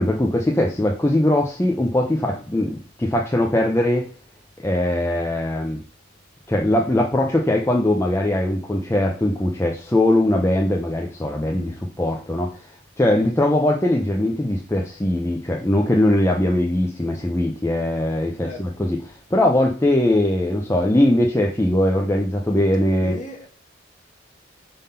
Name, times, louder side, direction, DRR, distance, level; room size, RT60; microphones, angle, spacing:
voice 1, 0.0-4.1 4.6-5.8 6.5-12.7 13.0-23.2, left 1 dB, 15° left, 0.5 m, -21 dB
voice 2, 11.4-11.7 13.1-13.3 15.8-15.9 18.4-18.7 23.0-23.5, equal, 35° left, 1.7 m, -38 dB
5.2 x 3.7 x 5.6 m
head